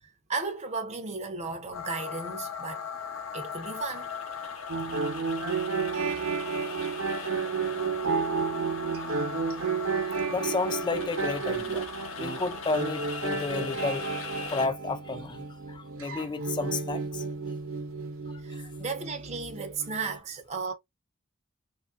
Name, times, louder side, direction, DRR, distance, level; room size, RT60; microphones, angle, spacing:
voice 1, 0.3-2.9 3.3-4.1 18.4-20.7, right 4 dB, 35° right, 0.5 m, -34 dB
sound 1, 1.7-14.7, left 5 dB, 90° left, 0.7 m, -39 dB
sound 2, 4.7-20.2, right 5 dB, 85° right, 0.7 m, -32 dB
voice 2, 10.1-11.9 12.2-15.4 15.7-17.2, left 3 dB, 20° left, 0.3 m, -32 dB
3.0 x 2.3 x 2.3 m
head